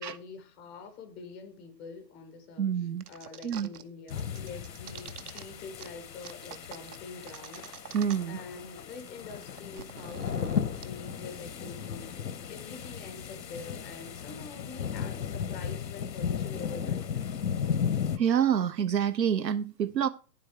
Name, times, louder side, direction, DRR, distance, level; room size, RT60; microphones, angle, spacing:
voice 1, 0.0-7.9 8.3-12.2 12.5-17.4, left 4 dB, ahead, 0.4 m, -45 dB
voice 2, 2.6-3.0 3.4-3.7 7.9-8.4 18.2-20.1, right 8 dB, 85° right, 0.7 m, -27 dB
sound 1, 3.0-3.8 4.1-5.4 5.8-5.9 6.2-8.4 8.7-8.8 9.0-10.8, right 9 dB, 65° right, 1.0 m, -45 dB
sound 2, 4.1-18.2, left 7 dB, 85° left, 0.9 m, -35 dB
9.5 x 7.7 x 4.6 m
figure-of-eight pair, 125°, 49 cm